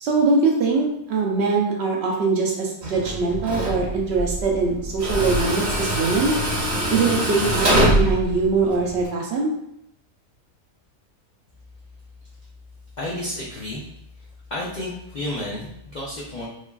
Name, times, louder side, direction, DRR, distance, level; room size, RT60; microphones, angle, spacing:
voice 1, 0.0-6.3 6.9-9.5, right 4 dB, 65° right, -1 dB, 0.7 m, -22 dB
Tools, 2.8-9.1, right 1 dB, 40° right, 0.9 m, -24 dB
voice 2, 13.0-13.9 14.2-14.3 14.5-16.5, left 1 dB, 85° left, -5 dB, 0.4 m, -31 dB
3.2 x 2.2 x 2.2 m, 0.77 s
omnidirectional pair, 1.4 m